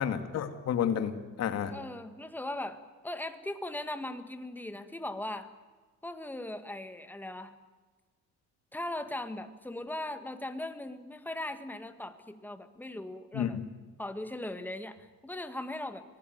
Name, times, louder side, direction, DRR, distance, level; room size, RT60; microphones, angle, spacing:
voice 1, 0.0-1.8 13.3-13.6, left 8 dB, 55° left, 9 dB, 2.3 m, -31 dB
voice 2, 1.7-5.5 6.0-7.6 8.7-13.6 14.0-16.0, left 1 dB, 5° left, 9 dB, 1.7 m, -39 dB
26.0 x 18.0 x 9.5 m, 1.4 s
cardioid pair, 150°, 32 cm